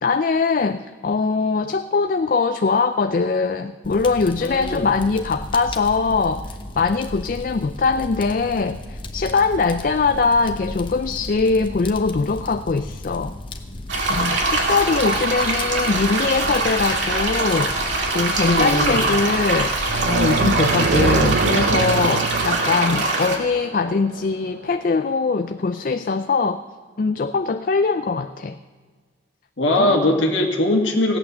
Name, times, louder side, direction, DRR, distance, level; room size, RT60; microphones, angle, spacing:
voice 1, 0.0-13.3 14.1-19.8 20.1-26.6 27.0-28.6 29.8-30.0, left 4 dB, 45° left, 9 dB, 0.4 m, -22 dB
Fire, 3.8-20.7, left 1 dB, 25° left, 0.9 m, -35 dB
voice 2, 4.4-4.9 18.4-19.1 29.6-31.2, left 1 dB, 85° left, 1 dB, 1.8 m, -20 dB
sound 1, 13.9-23.4, right 2 dB, 80° right, 2.4 m, -23 dB
sound 2, 19.8-25.0, right 4 dB, 60° right, 0.5 m, -24 dB
16.5 x 9.0 x 6.8 m, 1.5 s
head